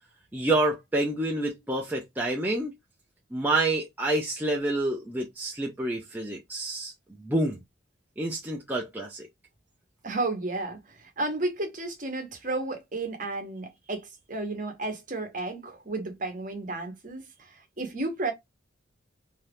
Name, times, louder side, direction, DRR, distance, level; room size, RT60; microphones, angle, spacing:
voice 1, 0.3-2.7 3.3-6.9 7.2-7.6 8.2-9.2, right 2 dB, 10° right, 0.5 m, -28 dB
voice 2, 10.0-18.3, right 2 dB, 40° right, 0.9 m, -33 dB
2.8 x 2.3 x 3.3 m
head